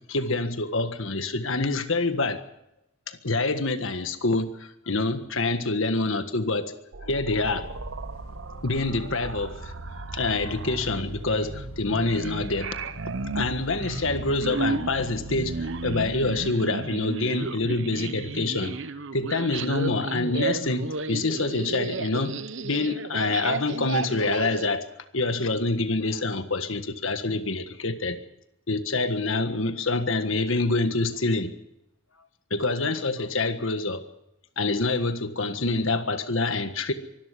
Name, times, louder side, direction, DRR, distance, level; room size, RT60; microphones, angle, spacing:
voice 1, 0.1-2.4 3.1-6.7 7.0-7.7 8.6-9.7 10.1-12.8 13.3-18.8 19.1-24.9 25.1-28.2 28.7-31.5 32.5-34.0 34.6-36.9, left 3 dB, 60° left, 9 dB, 1.6 m, -26 dB
sound 1, 6.9-24.7, right 4 dB, 60° right, 0.8 m, -34 dB
sound 2, 7.4-16.5, left 1 dB, 80° left, 1.9 m, -43 dB
24.5 x 12.5 x 8.3 m, 0.84 s
head